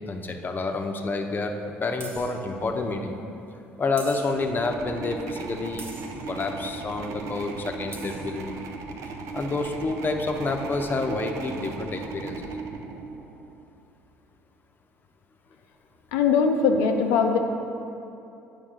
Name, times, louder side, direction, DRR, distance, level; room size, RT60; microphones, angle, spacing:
voice 1, 0.1-1.5 1.8-3.2 3.8-5.8 6.3-8.5 9.3-12.5, left 3 dB, 35° left, 4 dB, 0.8 m, -28 dB
sound 1, 0.7-0.8 2.0-2.4 4.0-4.6 5.8-6.2 7.6-7.7 7.9-8.4, right 3 dB, 40° right, 1.1 m, -43 dB
sound 2, 4.3-13.6, right 4 dB, 60° right, 0.6 m, -37 dB
voice 2, 16.1-17.4, left 5 dB, 75° left, 4 dB, 0.6 m, -21 dB
8.6 x 5.2 x 3.7 m, 2.8 s
hypercardioid pair, 55°, 6 cm